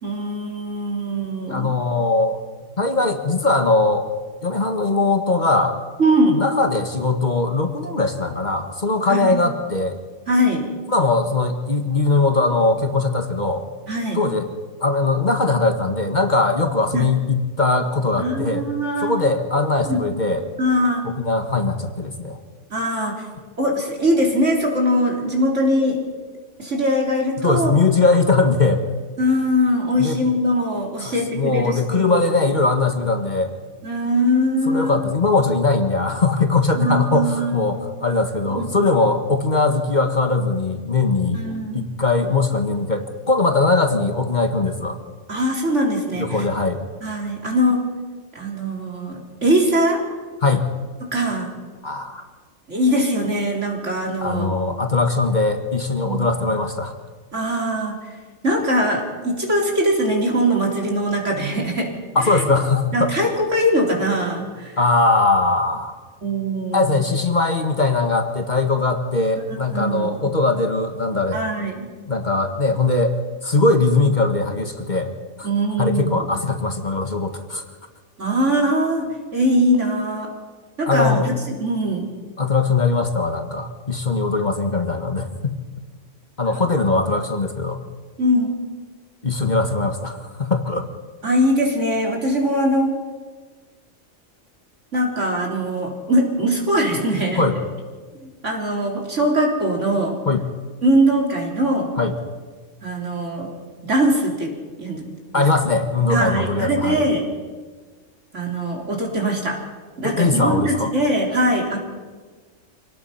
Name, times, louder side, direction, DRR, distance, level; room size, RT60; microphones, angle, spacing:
voice 1, 0.0-1.8 6.0-6.4 9.1-9.3 10.3-10.6 13.9-14.2 16.9-17.1 18.2-19.1 19.8-20.0 20.6-21.0 22.7-23.2 23.6-26.0 26.6-27.8 29.2-32.3 33.8-34.9 36.8-37.7 38.5-38.9 41.3-41.8 45.3-46.3 47.0-47.8 48.3-50.0 51.1-51.5 52.7-54.5 56.0-56.3 57.3-58.0 58.4-61.9 62.2-62.4 62.9-64.7 66.2-67.0 69.7-70.2 71.3-71.9 75.4-76.3 78.2-80.3 80.8-81.3 81.6-82.1 88.2-88.5 91.2-93.0 94.9-97.4 98.2-100.2 100.8-101.9 102.8-103.5 103.8-104.5 104.8-105.0 105.3-105.4 106.1-107.3 108.3-109.6 110.0-111.8, equal, 70° right, 0 dB, 4.0 m, -21 dB
voice 2, 1.5-2.4 2.8-4.1 4.4-5.7 6.3-10.0 10.9-13.6 14.1-14.5 14.8-18.6 19.0-20.4 21.0-22.4 27.4-28.8 30.0-30.2 31.0-33.5 34.6-41.4 41.7-45.0 46.2-46.8 50.4-50.7 51.8-52.2 54.2-56.9 62.1-63.1 64.8-65.9 66.7-71.4 72.1-73.2 73.4-75.1 75.4-75.5 75.8-77.6 80.9-81.3 82.4-85.6 86.4-87.8 89.2-90.9 97.4-97.6 100.2-100.4 102.0-102.2 105.3-107.0 110.0-110.9, left 3 dB, 35° left, 6 dB, 1.6 m, -20 dB
26.0 x 18.5 x 5.7 m, 1.4 s
omnidirectional pair, 1.3 m